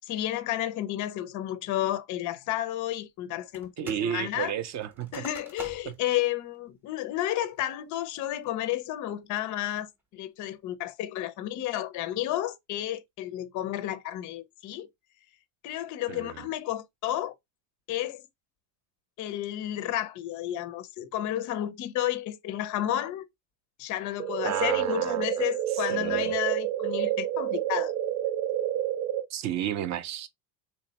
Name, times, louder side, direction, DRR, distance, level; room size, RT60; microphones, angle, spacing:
voice 1, 0.0-4.5 5.1-14.9 15.6-17.3 17.9-18.3 19.2-23.3 23.8-27.9, left 13 dB, 40° left, 0.4 m, -32 dB
sound 1, 3.5-4.1 4.4-6.1 6.5-6.6 7.1-7.5 8.0-8.4, right 1 dB, 5° right, 0.7 m, -46 dB
voice 2, 3.8-5.3 5.9-6.0 16.1-16.5 24.4-25.5 25.7-26.3 29.3-30.3, right 10 dB, 40° right, 0.4 m, -33 dB
sound 2, 24.2-29.2, right 12 dB, 80° right, 1.1 m, -29 dB
3.5 x 3.0 x 2.7 m
cardioid pair, 155°, 50 cm